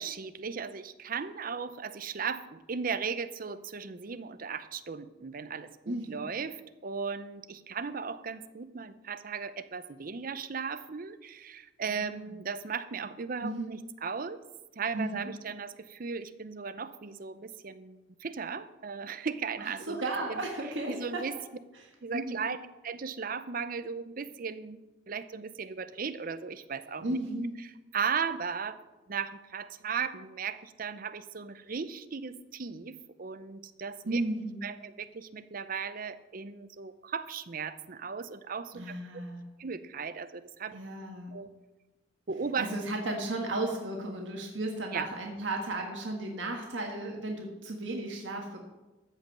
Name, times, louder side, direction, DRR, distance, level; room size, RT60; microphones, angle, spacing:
voice 1, 0.0-14.4 14.8-20.0 20.3-20.4 20.9-21.4 22.0-24.8 25.1-27.2 27.9-28.8 29.1-34.2 34.6-38.9 39.6-40.8 41.3-41.5 42.3-42.7 44.9-45.1, right 5 dB, 50° right, 12 dB, 0.6 m, -36 dB
voice 2, 5.9-6.3 11.9-12.2 13.4-13.7 14.9-15.3 19.6-21.2 22.1-22.4 27.0-27.6 34.1-34.7 38.7-39.5 40.7-41.4 42.6-48.7, right 2 dB, 85° right, 1 dB, 1.5 m, -34 dB
14.0 x 5.3 x 7.4 m, 1.1 s
head